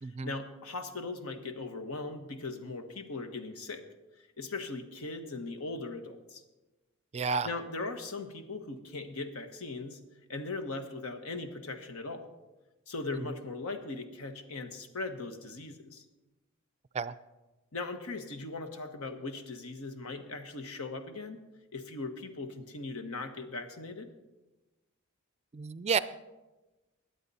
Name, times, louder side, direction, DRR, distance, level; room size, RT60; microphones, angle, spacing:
voice 1, 0.2-3.8 4.4-6.4 7.4-10.0 10.3-12.3 12.9-16.0 17.7-21.4 21.7-24.1, left 3 dB, 85° left, 8 dB, 1.2 m, -39 dB
voice 2, 7.1-7.5 13.2-13.3 16.9-17.1 25.5-26.0, right 5 dB, 30° right, 16 dB, 0.4 m, -31 dB
21.5 x 8.2 x 4.1 m, 1.1 s
head